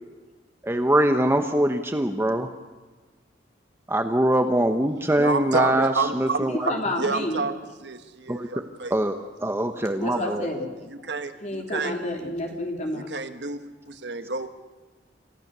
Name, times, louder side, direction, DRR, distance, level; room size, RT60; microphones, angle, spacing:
voice 1, 0.6-2.5 3.9-6.7 8.3-8.5 8.9-10.5, right 1 dB, 15° right, 6 dB, 0.9 m, -23 dB
voice 2, 5.2-7.6 7.8-8.9 10.1-10.3 11.0-11.9 13.1-14.5, right 3 dB, 70° right, 8 dB, 1.5 m, -29 dB
voice 3, 6.5-7.5 9.9-13.1, left 1 dB, 40° left, 1 dB, 3.6 m, -30 dB
28.0 x 15.0 x 6.8 m, 1.3 s
head